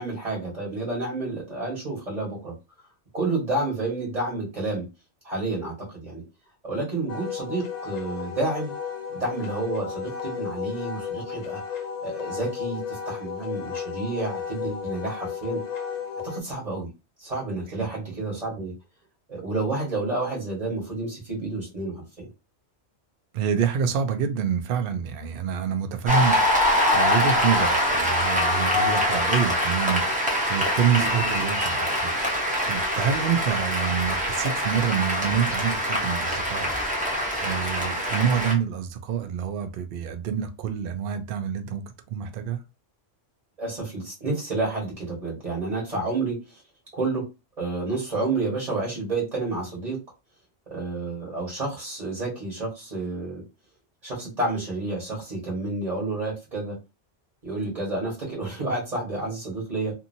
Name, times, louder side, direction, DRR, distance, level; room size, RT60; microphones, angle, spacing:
voice 1, 0.0-2.5 3.1-4.9 5.2-6.2 6.6-8.7 9.1-15.6 16.2-16.9 17.2-18.7 19.3-22.3 28.8-29.0 31.0-31.1 43.6-46.6 46.9-47.2 47.6-50.0 50.7-53.4 54.0-56.8 57.4-59.9, right 2 dB, 35° right, 1.3 m, -30 dB
Wind instrument woodwind instrument, 7.1-16.4, left 7 dB, 55° left, 0.5 m, -33 dB
voice 2, 23.3-36.8 37.4-41.8 42.1-42.6, right 7 dB, 60° right, 0.6 m, -27 dB
Cheering / Applause, 26.1-38.5, left 1 dB, 10° right, 0.6 m, -24 dB
2.7 x 2.6 x 2.6 m
omnidirectional pair, 1.2 m